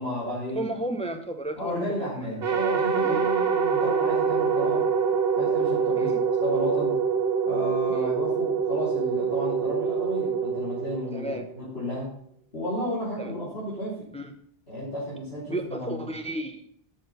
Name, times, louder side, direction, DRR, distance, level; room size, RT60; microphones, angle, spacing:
voice 1, 0.0-0.6 1.6-4.9 5.3-7.0 7.4-12.1 12.5-14.1 14.7-16.1, equal, 85° left, -8 dB, 4.1 m, -33 dB
voice 2, 0.5-2.3 3.0-3.3 6.0-6.2 7.9-8.1 11.1-11.5 13.2-13.3 14.1-14.3 15.5-16.7, right 1 dB, 5° left, 6 dB, 0.9 m, -33 dB
sound 1, 2.4-11.7, right 6 dB, 70° right, 1.3 m, -25 dB
13.0 x 5.9 x 5.7 m, 0.64 s
omnidirectional pair, 1.1 m